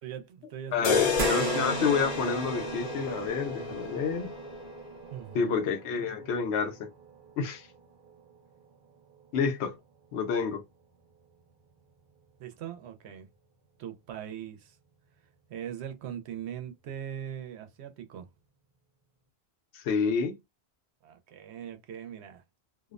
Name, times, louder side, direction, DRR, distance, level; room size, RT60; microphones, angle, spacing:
voice 1, 0.0-1.1 5.1-5.6 12.4-13.3 13.8-14.8 15.5-18.3 21.0-22.4, right 9 dB, 85° right, 0.9 m, -40 dB
voice 2, 0.7-4.3 5.3-6.9 7.4-7.7 9.3-9.8 10.1-10.6 19.7-20.3, left 5 dB, 90° left, 0.9 m, -29 dB
sound 1, 0.8-4.9, left 5 dB, 50° left, 0.6 m, -31 dB
sound 2, 1.2-9.8 10.2-10.3 11.8-11.9, right 5 dB, 55° right, 0.7 m, -38 dB
2.5 x 2.0 x 2.4 m
omnidirectional pair, 1.1 m